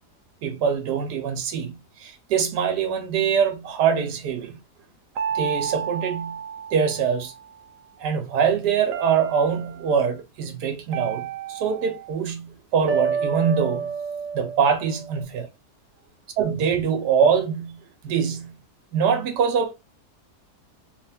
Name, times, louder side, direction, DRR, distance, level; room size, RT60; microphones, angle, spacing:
voice 1, 0.4-4.6 5.3-6.4 6.7-7.3 8.0-13.9 14.3-15.5 16.4-18.5 18.9-19.7, right 7 dB, 85° right, 1.4 m, -24 dB
sound 1, 5.1-7.5 8.9-9.9 10.9-12.2 12.9-15.2, right 6 dB, 70° right, 0.9 m, -30 dB
3.5 x 2.6 x 3.4 m
omnidirectional pair, 1.7 m